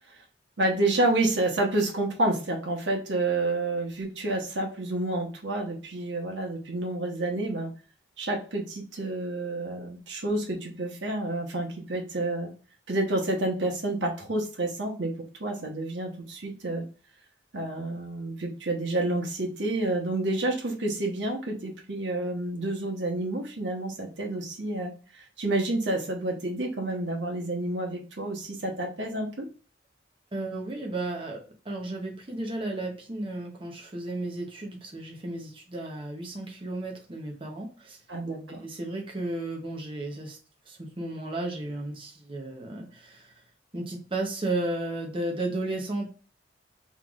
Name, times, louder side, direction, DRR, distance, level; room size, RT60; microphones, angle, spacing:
voice 1, 0.6-7.7 8.2-12.5 12.9-15.1 15.4-16.8 17.5-29.5 38.1-38.6, right 2 dB, 75° right, 1 dB, 1.2 m, -29 dB
voice 2, 30.3-40.4 40.7-43.4 43.7-46.1, right 2 dB, 30° right, -1 dB, 0.8 m, -34 dB
5.7 x 3.2 x 2.4 m, 0.36 s
head